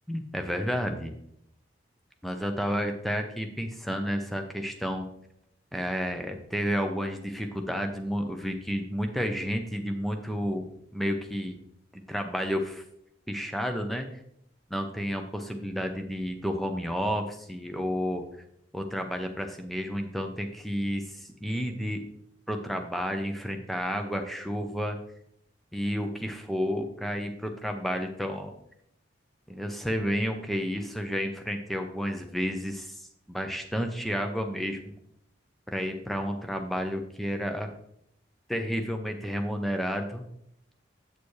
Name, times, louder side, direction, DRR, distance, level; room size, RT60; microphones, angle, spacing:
voice 1, 0.1-1.1 2.2-5.1 5.7-10.7 10.9-11.6 11.9-12.8 13.3-14.0 14.7-18.2 18.7-22.1 22.5-25.0 25.7-28.5 29.5-35.0 35.7-37.7 38.5-40.2, equal, ahead, 4 dB, 0.7 m, -31 dB
8.3 x 6.8 x 3.2 m, 0.72 s
head